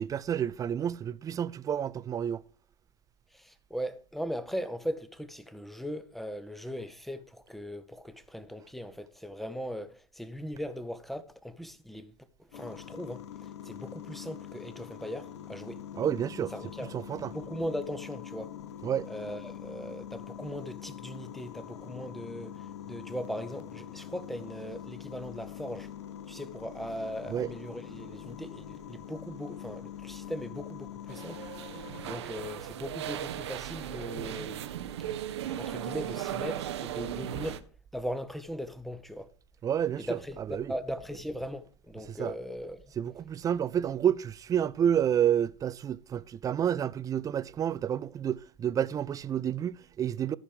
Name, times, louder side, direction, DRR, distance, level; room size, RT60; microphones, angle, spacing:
voice 1, 0.0-2.4 16.0-16.5 16.9-17.3 18.8-19.1 27.3-27.5 39.6-40.2 40.5-40.7 42.1-42.3 43.0-50.3, right 9 dB, 25° right, 0.5 m, -29 dB
voice 2, 3.3-12.1 12.4-15.8 16.5-16.9 17.3-18.5 19.1-25.9 26.3-31.4 32.0-34.7 35.5-37.6 37.9-39.3 40.0-42.8, equal, ahead, 1.1 m, -39 dB
sound 1, 12.5-32.2, left 10 dB, 65° left, 0.9 m, -44 dB
sound 2, 31.1-37.6, right 11 dB, 65° right, 0.8 m, -37 dB
14.0 x 6.5 x 4.8 m
figure-of-eight pair, 80°, 15 cm